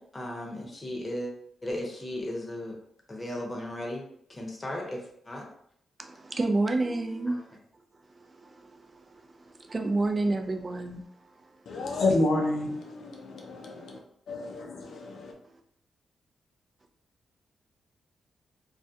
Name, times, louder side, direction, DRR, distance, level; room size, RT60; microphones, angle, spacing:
voice 1, 0.0-1.3 1.6-2.8 3.1-5.4 7.3-7.4, left 1 dB, 25° left, -1 dB, 0.8 m, -36 dB
voice 2, 6.0-7.4 8.1-11.6 14.8-14.9, right 2 dB, 35° right, 4 dB, 0.4 m, -30 dB
voice 3, 11.7-14.0 14.3-15.3, left 2 dB, 75° left, 0 dB, 0.5 m, -29 dB
2.3 x 2.2 x 2.7 m, 0.69 s
cardioid pair, 65°, 0 cm